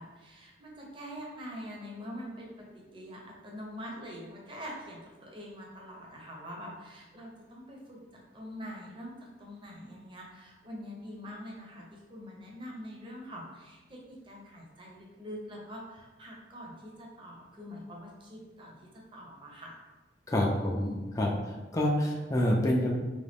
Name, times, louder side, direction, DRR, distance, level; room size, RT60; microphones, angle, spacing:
voice 1, 0.0-9.1 9.4-19.8 20.3-21.0, equal, 30° right, -2 dB, 0.7 m, -44 dB
voice 2, 20.3-21.3 21.7-23.0, left 1 dB, 20° left, -2 dB, 0.4 m, -27 dB
3.9 x 2.2 x 3.4 m, 1.2 s
head